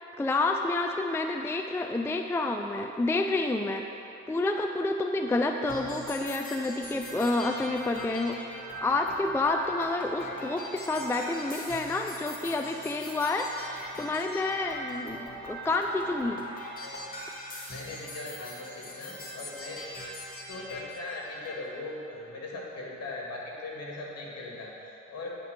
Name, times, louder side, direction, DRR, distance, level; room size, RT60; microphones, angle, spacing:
voice 1, 0.2-3.8 4.3-8.4 8.6-13.5 14.0-16.4, left 2 dB, 10° left, 4 dB, 0.4 m, -29 dB
sound 1, 5.7-21.7, equal, 30° left, 1.8 m, -41 dB
voice 2, 17.7-19.8 20.5-25.4, left 2 dB, 55° left, -2 dB, 2.0 m, -39 dB
9.4 x 4.4 x 6.7 m, 2.8 s
cardioid pair, 90°, 30 cm